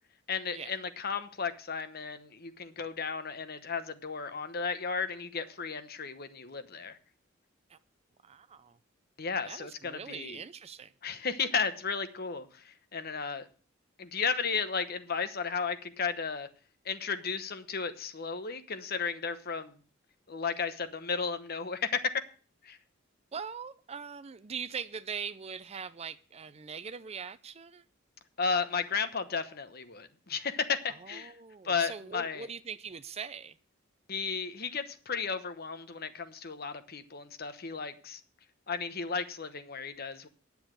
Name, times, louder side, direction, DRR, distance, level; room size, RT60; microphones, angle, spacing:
voice 1, 0.3-7.0 9.2-10.4 11.0-13.5 14.0-16.5 16.8-19.7 20.3-22.2 22.6-22.8 28.4-31.3 31.6-32.5 34.1-38.2 38.7-40.3, left 5 dB, 50° left, 1.0 m, -34 dB
voice 2, 8.2-8.8 9.4-10.9 23.3-27.8 30.9-33.6, right 6 dB, 30° right, 0.5 m, -41 dB
10.0 x 7.1 x 7.4 m
head